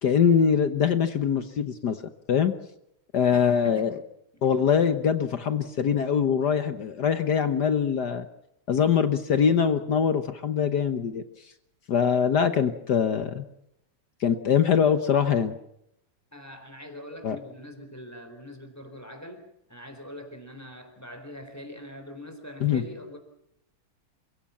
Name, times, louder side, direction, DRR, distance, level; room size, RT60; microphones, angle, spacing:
voice 1, 0.0-2.0 2.3-2.5 3.1-4.0 4.4-8.3 8.7-11.2 11.9-13.4 14.2-15.5 17.2-17.4 22.6-22.8, left 7 dB, 55° left, 10 dB, 1.5 m, -23 dB
voice 2, 3.3-3.9 16.3-23.2, left 1 dB, 5° left, 5 dB, 4.0 m, -43 dB
28.0 x 17.0 x 7.2 m, 0.79 s
omnidirectional pair, 2.4 m